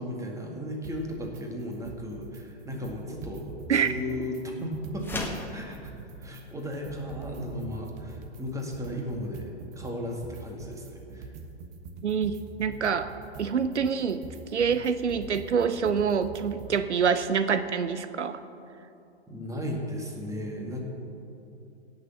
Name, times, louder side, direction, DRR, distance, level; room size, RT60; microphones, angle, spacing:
voice 1, 0.0-3.5 3.7-5.2 5.5-5.9 6.2-11.3 19.3-20.8, equal, 10° right, 0 dB, 2.0 m, -35 dB
sound 1, 0.8-1.4 1.7-2.4 2.7-5.4 5.7-16.8, right 4 dB, 35° right, 1.2 m, -44 dB
sound 2, 5.0-5.5, left 2 dB, 5° left, 1.5 m, -34 dB
voice 2, 12.0-13.1 13.4-14.2 14.5-18.4, right 6 dB, 85° right, 12 dB, 0.7 m, -26 dB
17.0 x 6.7 x 7.1 m, 2.7 s
figure-of-eight pair, 110°, 34 cm